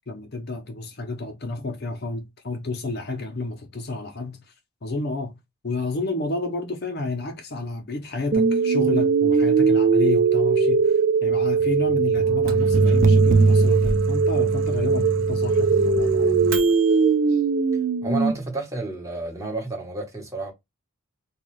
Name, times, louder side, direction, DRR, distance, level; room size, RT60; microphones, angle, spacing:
voice 1, 0.1-4.4 4.8-5.4 5.6-16.4, left 3 dB, 45° left, 0.6 m, -31 dB
sound 1, 8.3-18.3, right 5 dB, 35° right, 0.3 m, -20 dB
Microwave oven, 12.2-17.0, right 1 dB, 65° right, 0.7 m, -28 dB
voice 2, 18.0-20.5, right 3 dB, 15° right, 1.0 m, -30 dB
3.8 x 2.3 x 3.1 m
head